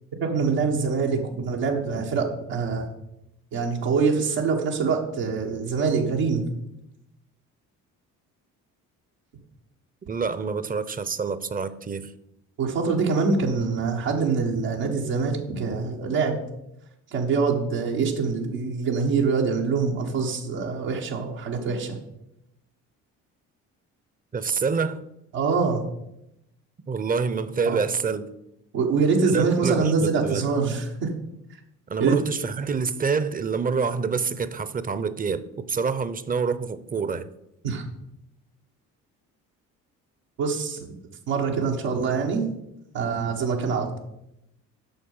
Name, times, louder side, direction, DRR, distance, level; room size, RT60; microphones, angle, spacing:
voice 1, 0.2-2.9 3.5-6.4 12.6-16.4 17.1-22.0 25.3-25.8 27.6-27.8 28.7-31.1 32.0-32.1 37.6-37.8 40.4-40.9 41.3-42.4 42.9-44.0, right 5 dB, 80° right, 1.6 m, -24 dB
voice 2, 10.1-12.1 24.3-25.0 26.9-28.3 29.3-30.4 31.9-35.4 35.7-37.3, right 5 dB, 25° right, 0.7 m, -27 dB
8.9 x 6.4 x 5.6 m
supercardioid pair, 65°, 36 cm